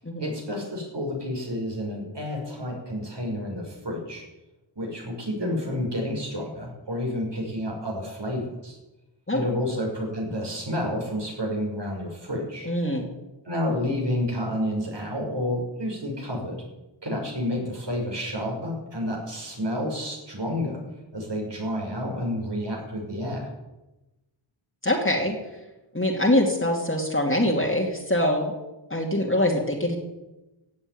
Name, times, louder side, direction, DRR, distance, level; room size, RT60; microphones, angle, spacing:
voice 1, 0.2-4.3 4.8-8.8 9.3-12.7 13.4-16.6 17.0-20.8 21.1-23.5, left 1 dB, 55° right, 0 dB, 6.0 m, -30 dB
voice 2, 12.7-13.1 24.8-25.4 25.9-28.5 28.9-30.0, left 1 dB, 25° left, -1 dB, 2.6 m, -23 dB
16.5 x 7.8 x 9.5 m, 1.0 s
wide cardioid pair, 55°, 48 cm